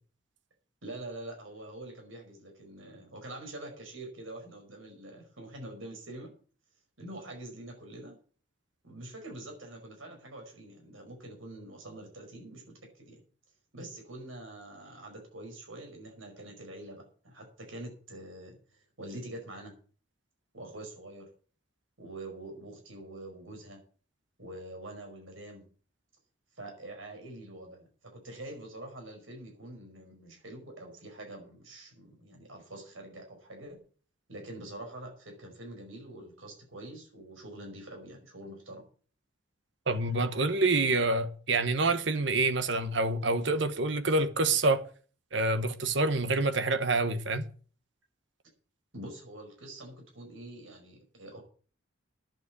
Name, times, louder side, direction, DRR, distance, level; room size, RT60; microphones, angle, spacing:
voice 1, 0.8-6.3 7.0-8.2 8.8-13.2 13.7-19.8 20.5-21.3 22.0-23.8 24.4-25.7 26.6-33.8 34.3-38.8 48.9-51.4, right 1 dB, 85° right, 5.3 m, -45 dB
voice 2, 39.9-44.8 45.3-47.4, right 2 dB, 65° right, 1.2 m, -27 dB
10.5 x 8.1 x 8.2 m
head